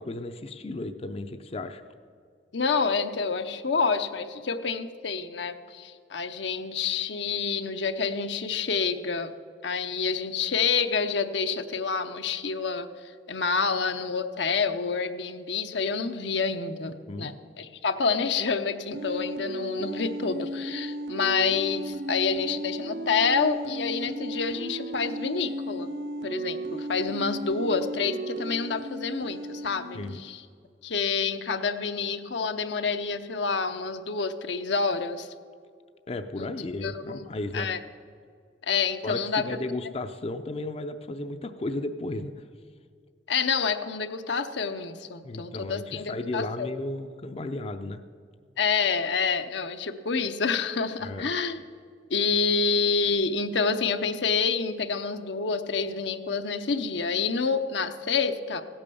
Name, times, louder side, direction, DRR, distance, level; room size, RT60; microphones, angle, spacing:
voice 1, 0.0-1.8 17.1-17.3 29.9-30.2 36.1-37.7 39.0-42.5 45.2-48.0 51.0-51.3, left 2 dB, 35° left, 8 dB, 0.5 m, -34 dB
voice 2, 2.5-9.3 9.6-25.9 26.2-30.4 30.8-35.3 36.4-36.5 36.8-37.2 37.5-37.8 38.6-39.5 43.3-46.7 48.6-51.6 52.1-58.6, left 5 dB, 80° left, 8 dB, 0.8 m, -28 dB
sound 1, 18.9-30.1, right 1 dB, 70° right, 0.9 m, -35 dB
16.0 x 8.8 x 6.9 m, 2.1 s
head